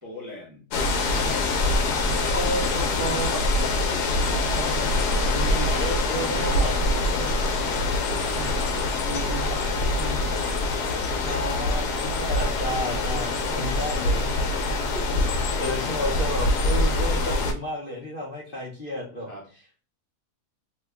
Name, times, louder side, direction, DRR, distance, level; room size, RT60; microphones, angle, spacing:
voice 1, 0.0-0.7 3.0-3.1 3.5-4.1 5.2-8.1 8.3-8.6 9.0-10.3 10.6-11.9 19.3-19.5, equal, 15° right, -5 dB, 0.6 m, -38 dB
sound 1, 0.7-17.5, left 2 dB, 85° left, 1.2 m, -24 dB
voice 2, 2.3-3.4 5.8-6.7 11.2-14.3 15.5-19.3, equal, 55° left, -3 dB, 0.6 m, -31 dB
3.0 x 2.2 x 3.3 m, 0.35 s
omnidirectional pair, 1.6 m